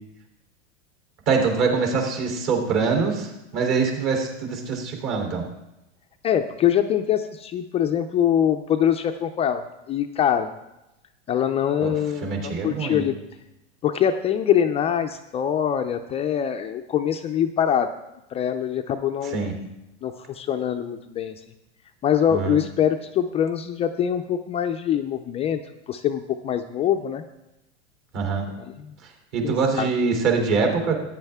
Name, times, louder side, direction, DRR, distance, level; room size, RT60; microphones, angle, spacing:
voice 1, 1.3-5.4 11.8-11.9 12.2-13.0 19.3-19.5 22.3-22.6 28.1-28.5 29.3-30.9, right 5 dB, 45° right, 2 dB, 3.4 m, -24 dB
voice 2, 6.2-10.5 11.3-13.1 13.8-17.9 18.3-19.5 20.0-21.4 22.0-25.6 25.9-27.2 28.6-28.7 29.4-29.9, left 9 dB, 20° left, 6 dB, 0.3 m, -24 dB
14.0 x 10.0 x 3.5 m, 0.92 s
supercardioid pair, 125°, 36 cm